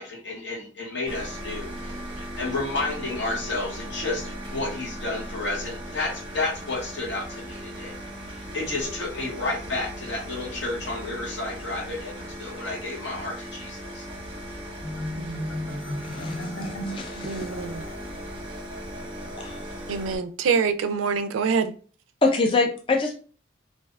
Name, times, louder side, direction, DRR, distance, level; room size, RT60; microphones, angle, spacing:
voice 1, 0.0-8.0 8.3-14.0, left 2 dB, 65° left, 1.1 m, -31 dB
sound 1, 1.1-20.2, equal, 30° right, 0.7 m, -38 dB
Marimba xylophone, 14.8-18.2, left 1 dB, 90° left, 0.8 m, -35 dB
voice 2, 15.2-15.5 17.2-17.8 19.9-21.7, right 5 dB, 90° right, 0.3 m, -26 dB
voice 3, 16.0-17.5 19.4-19.6 22.2-23.1, left 3 dB, 25° left, 0.3 m, -25 dB
2.5 x 2.3 x 3.2 m
head